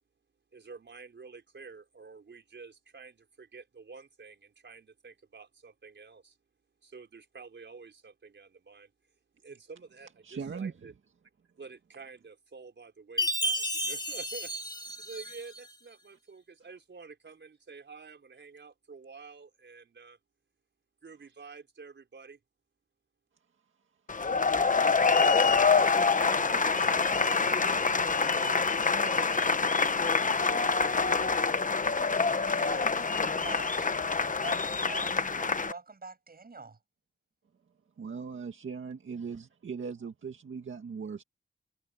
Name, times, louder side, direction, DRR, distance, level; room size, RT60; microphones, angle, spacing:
voice 1, 0.5-6.4 6.8-8.9 9.3-10.9 11.6-14.5 15.0-20.2 21.0-22.4, right 4 dB, 65° right, 4.6 m, -49 dB
voice 2, 10.2-10.9 24.3-24.4 38.0-41.2, right 5 dB, 85° right, 2.0 m, -39 dB
Chime, 13.2-15.7, equal, 20° left, 2.3 m, -32 dB
sound 1, 24.1-35.7, left 4 dB, 40° left, 1.0 m, -26 dB
voice 3, 24.1-30.8 32.0-36.8, right 4 dB, 50° right, 6.5 m, -47 dB
wide cardioid pair, 80°, 20 cm